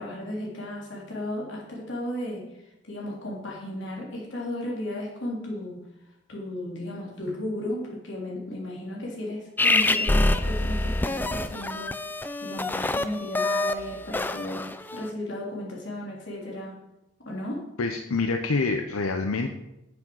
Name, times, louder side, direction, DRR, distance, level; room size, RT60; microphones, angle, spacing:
voice 1, 0.0-2.4 2.9-5.8 6.3-16.8 17.2-17.7, left 1 dB, 55° left, -3 dB, 3.3 m, -34 dB
sound 1, 9.6-15.0, left 2 dB, 10° left, 0.3 m, -26 dB
voice 2, 17.8-19.5, left 3 dB, 85° left, 5 dB, 0.7 m, -26 dB
9.5 x 7.4 x 6.3 m, 0.91 s
head